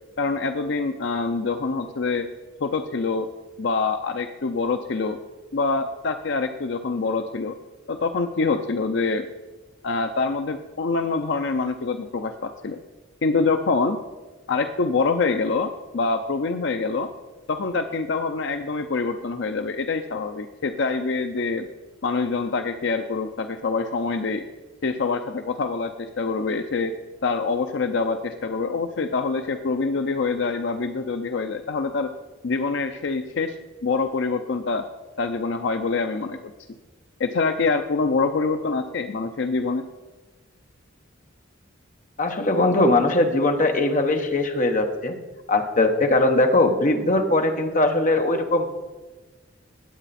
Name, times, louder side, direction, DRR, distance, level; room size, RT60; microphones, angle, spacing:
voice 1, 0.2-2.3 2.6-3.3 3.6-5.2 5.5-7.5 7.9-9.3 9.8-12.8 13.2-14.0 14.5-17.1 17.5-21.7 22.0-24.4 24.8-26.9 27.2-32.1 32.4-33.6 33.8-34.9 35.2-36.4 37.2-39.9, left 4 dB, 65° left, 7 dB, 0.6 m, -25 dB
voice 2, 42.2-45.2 45.5-48.6, left 2 dB, 40° left, 5 dB, 1.1 m, -20 dB
18.0 x 8.1 x 4.2 m, 1.2 s
head